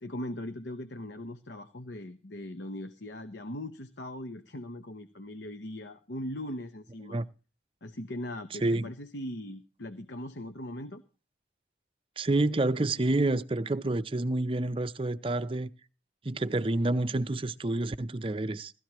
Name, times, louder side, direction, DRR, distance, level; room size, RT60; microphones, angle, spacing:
voice 1, 0.0-7.2 7.8-11.0, left 1 dB, 75° left, 1.0 m, -40 dB
voice 2, 12.2-15.7 16.2-18.7, right 2 dB, 30° right, 0.6 m, -28 dB
17.5 x 13.5 x 3.0 m
head